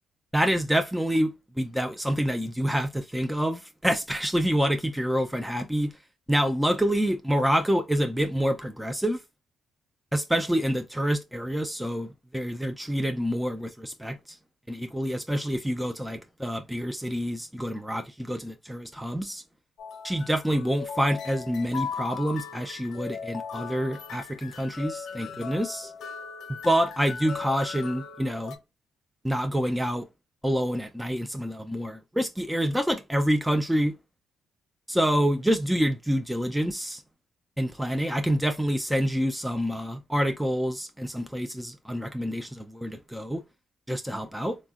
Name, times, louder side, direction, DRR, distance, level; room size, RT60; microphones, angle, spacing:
voice 1, 0.3-5.9 6.3-9.2 10.1-14.4 14.7-19.4 20.0-25.9 26.5-28.6 29.2-30.1 30.4-34.0 34.9-37.0 37.6-43.4 43.9-44.6, equal, 5° right, 0.3 m, -27 dB
sound 1, 19.8-28.6, left 6 dB, 70° left, 0.5 m, -38 dB
3.6 x 2.1 x 2.3 m
cardioid pair, 90°, 0 cm